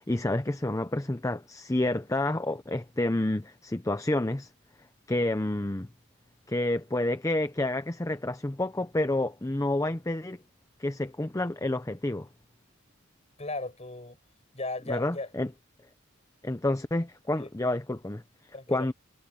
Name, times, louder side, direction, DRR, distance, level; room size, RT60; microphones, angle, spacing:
voice 1, 0.0-4.5 5.1-5.9 6.5-10.4 10.8-12.3 14.9-15.5 16.4-18.2 18.7-18.9, left 1 dB, 15° left, 0.6 m, -29 dB
voice 2, 13.4-14.2 14.5-15.3 17.4-17.5 18.5-18.9, left 2 dB, 30° left, 5.7 m, -36 dB
head